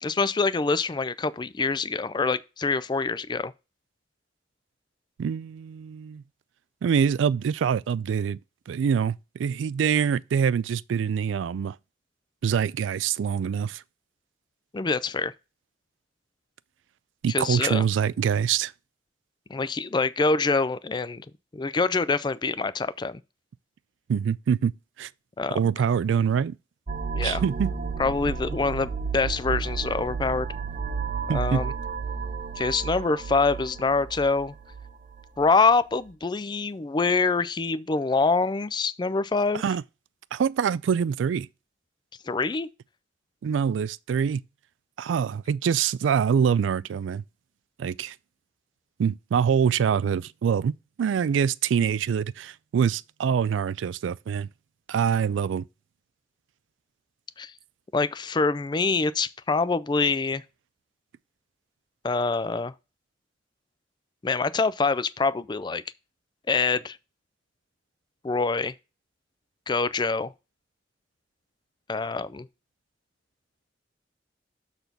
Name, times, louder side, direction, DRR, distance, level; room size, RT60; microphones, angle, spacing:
voice 1, 0.0-3.5 14.7-15.3 17.3-17.9 19.5-21.3 21.5-23.2 25.4-25.6 27.1-27.4 28.0-30.5 31.3-31.7 32.6-34.5 35.4-39.6 42.3-42.7 57.4-57.5 57.9-60.4 62.0-62.7 64.2-65.8 66.5-67.0 68.2-68.7 69.7-70.3 71.9-72.5, left 4 dB, 25° left, 0.4 m, -25 dB
voice 2, 5.2-6.2 6.8-8.4 8.7-11.8 12.4-13.8 17.2-18.7 24.1-24.7 25.0-25.1 25.5-26.6 27.2-27.7 31.3-31.6 39.5-39.8 40.3-41.5 43.4-44.4 45.0-47.2 47.8-48.1 49.0-54.5 54.9-55.7, right 7 dB, 85° right, 0.3 m, -25 dB
sound 1, 26.9-35.5, right 5 dB, 45° right, 0.6 m, -32 dB
6.8 x 4.1 x 5.8 m
head